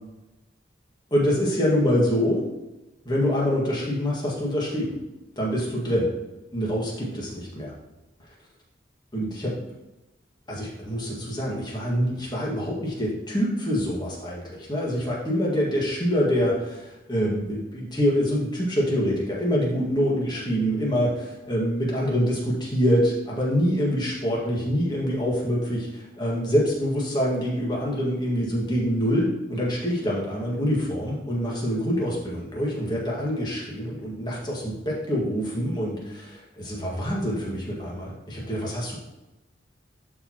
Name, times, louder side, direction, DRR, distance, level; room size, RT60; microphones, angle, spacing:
voice 1, 1.1-2.5 3.0-5.0 5.4-6.1 6.5-7.7 9.1-9.5 10.5-39.0, equal, 25° left, -4 dB, 1.9 m, -25 dB
11.5 x 4.7 x 3.0 m, 1.0 s
head